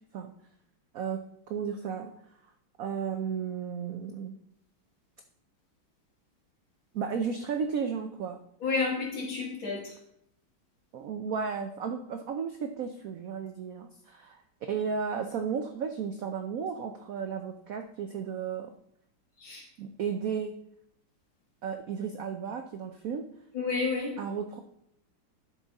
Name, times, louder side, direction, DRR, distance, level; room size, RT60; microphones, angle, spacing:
voice 1, 1.5-2.1 2.8-4.3 6.9-8.4 10.9-14.4 14.7-18.7 19.8-20.6 21.6-23.3 24.2-24.6, right 6 dB, 75° right, 6 dB, 0.8 m, -34 dB
voice 2, 8.6-10.0 19.4-19.6 23.5-24.2, left 4 dB, 75° left, -3 dB, 3.2 m, -30 dB
11.5 x 6.2 x 4.0 m, 0.75 s
omnidirectional pair, 2.2 m